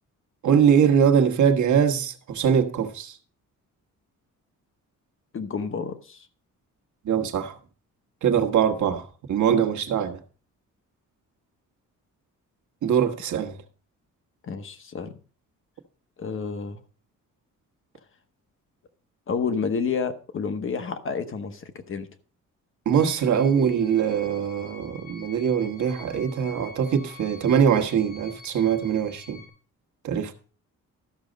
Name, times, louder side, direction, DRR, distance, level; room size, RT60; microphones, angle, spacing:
voice 1, 0.4-3.2 7.0-7.6 8.2-10.2 12.8-13.6 22.8-29.4 30.0-30.3, right 7 dB, 65° right, 1.3 m, -22 dB
voice 2, 5.3-6.3 14.4-15.1 16.2-16.8 19.3-22.1, left 5 dB, 40° left, 1.0 m, -30 dB
sound 1, 22.9-29.5, left 4 dB, 55° left, 3.3 m, -47 dB
13.0 x 6.2 x 5.1 m
cardioid pair, 165°, 32 cm